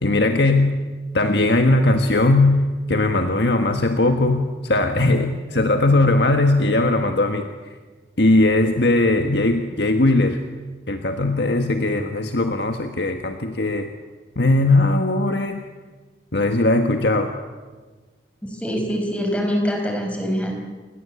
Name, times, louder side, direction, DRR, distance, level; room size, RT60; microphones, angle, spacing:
voice 1, 0.0-0.8 1.1-7.5 8.2-10.4 10.9-13.9 14.4-15.6 16.3-17.3, left 2 dB, 70° left, 5 dB, 1.6 m, -19 dB
voice 2, 18.5-20.5, equal, 5° left, 3 dB, 5.0 m, -24 dB
29.0 x 21.5 x 8.3 m, 1.4 s
head